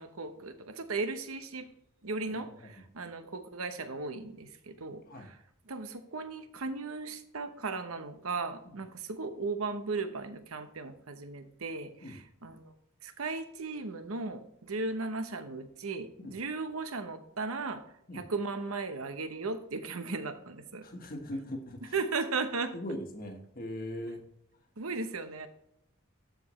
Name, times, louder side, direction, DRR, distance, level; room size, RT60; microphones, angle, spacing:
voice 1, 0.0-1.7 2.0-5.4 5.7-12.7 13.0-17.8 18.1-20.8 21.9-22.7 24.8-25.5, right 3 dB, 90° right, 9 dB, 0.9 m, -36 dB
voice 2, 2.3-2.8 5.1-5.3 8.6-8.7 12.0-12.2 16.2-16.4 18.1-18.2 20.8-21.9 22.7-24.2, left 1 dB, 45° left, 3 dB, 1.5 m, -40 dB
13.0 x 5.0 x 3.2 m, 0.74 s
head